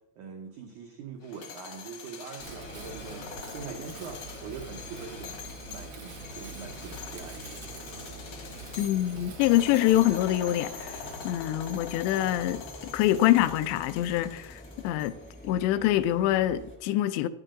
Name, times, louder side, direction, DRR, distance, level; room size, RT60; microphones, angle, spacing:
voice 1, 0.2-7.6, right 6 dB, 85° right, 1.7 m, -43 dB
sound 1, 1.2-15.4, left 6 dB, 60° left, 1.5 m, -44 dB
sound 2, 2.4-16.8, equal, 10° left, 0.6 m, -48 dB
Wind, 2.4-11.3, right 4 dB, 70° right, 1.4 m, -46 dB
voice 2, 8.8-15.1 15.4-17.3, left 14 dB, 85° left, 2.9 m, -25 dB
14.5 x 10.0 x 3.8 m
omnidirectional pair, 5.0 m